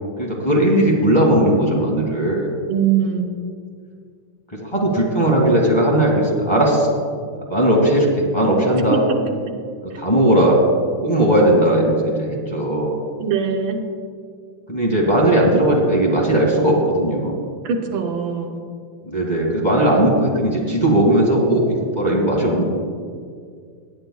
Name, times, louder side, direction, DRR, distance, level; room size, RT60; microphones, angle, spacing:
voice 1, 0.2-2.5 4.5-6.9 7.5-9.0 9.8-10.6 11.0-12.9 14.7-17.3 19.1-21.6 22.0-22.6, right 1 dB, 15° left, -3 dB, 1.8 m, -17 dB
voice 2, 2.7-3.5 8.9-9.5 9.9-10.0 13.2-13.8 17.6-18.6, right 6 dB, 90° right, 4 dB, 1.6 m, -22 dB
18.0 x 9.3 x 2.3 m, 2.1 s
omnidirectional pair, 2.1 m